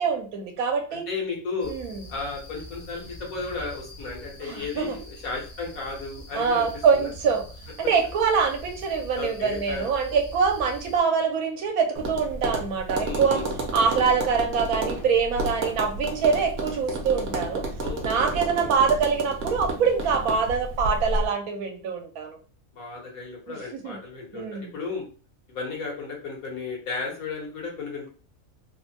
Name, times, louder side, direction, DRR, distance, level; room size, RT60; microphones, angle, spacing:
voice 1, 0.0-1.1 1.7-2.0 4.4-5.0 6.3-7.4 7.8-13.4 13.7-17.7 18.0-22.4 23.5-24.0 24.3-24.7, right 5 dB, 80° right, 5 dB, 1.1 m, -24 dB
voice 2, 0.9-1.7 2.1-6.7 6.9-7.1 9.1-9.9 13.0-13.5 17.8-18.7 22.7-25.0 25.5-28.1, left 4 dB, 70° left, -2 dB, 1.5 m, -34 dB
sound 1, 1.6-11.0, equal, 55° left, 0.4 m, -43 dB
Tap, 11.9-21.3, right 2 dB, 55° right, 0.9 m, -31 dB
3.2 x 2.1 x 2.7 m, 0.38 s
omnidirectional pair, 1.5 m